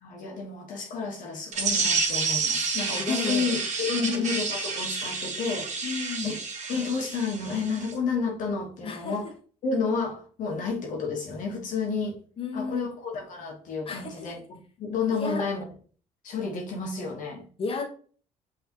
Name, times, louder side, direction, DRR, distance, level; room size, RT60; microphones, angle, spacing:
voice 1, 0.0-5.7 6.2-6.4 6.7-9.3 9.6-12.2 12.5-15.6 16.2-17.4, left 4 dB, 65° left, 1.3 m, -30 dB
sound 1, 1.5-7.9, right 4 dB, 55° right, 1.2 m, -29 dB
voice 2, 3.0-3.5 4.0-4.1 5.8-6.3 8.8-9.2 12.4-12.9 13.9-14.3 15.1-15.4 17.6-17.8, left 4 dB, 40° left, 1.2 m, -33 dB
5.6 x 3.2 x 2.9 m
supercardioid pair, 70°, 14 cm